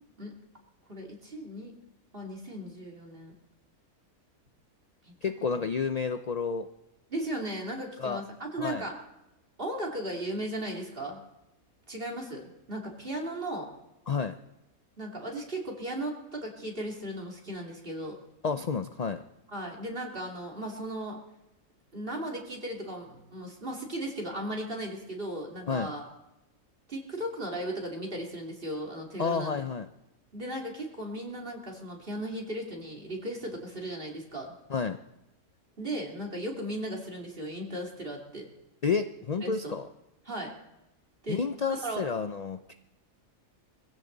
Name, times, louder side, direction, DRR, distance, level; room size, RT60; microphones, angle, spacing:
voice 1, 0.9-1.8 2.1-3.3 5.0-5.3 7.1-8.9 9.6-11.2 11.9-13.7 15.0-18.2 19.5-21.2 21.9-26.0 26.9-29.6 30.3-34.5 35.8-38.5 39.4-39.8 40.3-40.5 41.2-41.4 41.7-42.0, right 1 dB, 40° right, 0 dB, 3.0 m, -36 dB
voice 2, 5.2-6.7 8.0-8.2 8.6-8.9 14.1-14.4 18.4-19.2 25.7-25.9 29.2-29.9 34.7-35.0 38.8-39.9 41.3-42.7, left 5 dB, 55° left, 9 dB, 0.4 m, -30 dB
21.5 x 15.5 x 4.0 m, 0.93 s
omnidirectional pair, 1.5 m